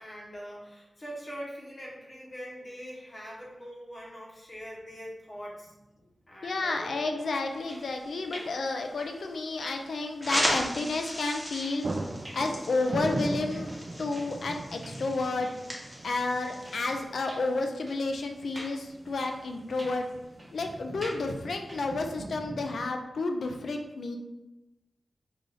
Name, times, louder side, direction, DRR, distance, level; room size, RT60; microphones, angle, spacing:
voice 1, 0.0-5.7 6.3-7.3 8.3-8.5, equal, 35° left, -3 dB, 0.9 m, -43 dB
sound 1, 4.9-5.0 6.6-7.0 7.3-7.4 11.0-11.2 11.5-22.9, right 2 dB, 40° right, 0.3 m, -40 dB
voice 2, 6.4-11.8 12.3-13.7 14.0-15.5 16.0-20.0 20.5-24.2, left 3 dB, 80° left, 4 dB, 0.4 m, -31 dB
sound 2, 7.4-22.3, equal, 20° right, 1.0 m, -51 dB
sound 3, 10.2-17.0, equal, 10° left, 0.9 m, -36 dB
3.8 x 2.5 x 3.2 m, 0.98 s
wide cardioid pair, 100°, 0 cm